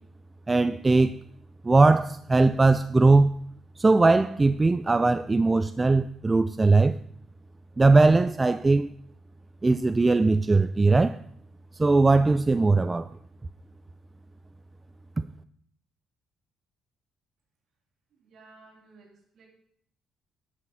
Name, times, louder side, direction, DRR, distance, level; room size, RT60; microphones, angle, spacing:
voice 1, 0.5-1.1 1.6-3.3 3.8-7.0 7.8-8.9 9.6-11.2 11.8-13.1, right 3 dB, 20° right, 0.4 m, -20 dB
voice 2, 18.1-19.5, right 3 dB, 60° right, 3.7 m, -55 dB
11.5 x 7.2 x 5.6 m
cardioid pair, 110°, 0 cm